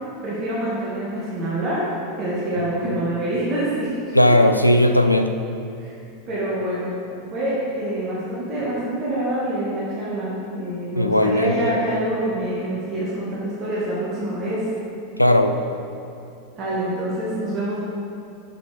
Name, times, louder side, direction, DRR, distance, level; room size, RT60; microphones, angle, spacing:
voice 1, 0.2-1.9 2.2-3.9 5.8-5.9 6.3-6.9 7.3-14.6 16.6-17.8, right 1 dB, 35° right, -8 dB, 2.0 m, -26 dB
voice 2, 4.1-5.3 11.0-11.7 15.2-15.6, left 1 dB, 90° left, 6 dB, 0.4 m, -17 dB
6.8 x 6.3 x 5.3 m, 2.6 s
figure-of-eight pair, 85°, 0 cm